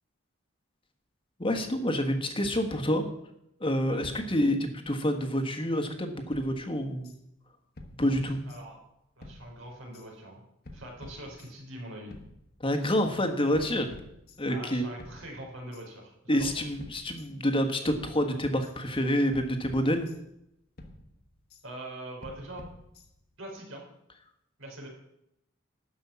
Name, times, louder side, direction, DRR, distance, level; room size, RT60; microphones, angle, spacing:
voice 1, 1.4-3.1 3.6-7.1 8.0-8.4 12.6-13.9 14.4-14.8 16.3-20.1, equal, 25° left, 6 dB, 1.4 m, -28 dB
voice 2, 3.9-4.2 8.1-8.2 8.4-8.8 9.2-10.4 10.7-12.1 14.5-16.5 21.6-22.6 23.4-23.8 24.6-24.9, right 1 dB, 75° right, 0 dB, 4.4 m, -43 dB
sound 1, 6.3-7.2 7.8-8.9 9.2-10.1 10.6-11.7 12.1-13.0 13.5-14.7 15.0-15.9 16.4-17.6 17.9-18.7 19.3-20.5 20.8-21.6 22.2-23.4, left 1 dB, 50° left, 1.4 m, -50 dB
12.5 x 5.6 x 8.5 m, 0.81 s
head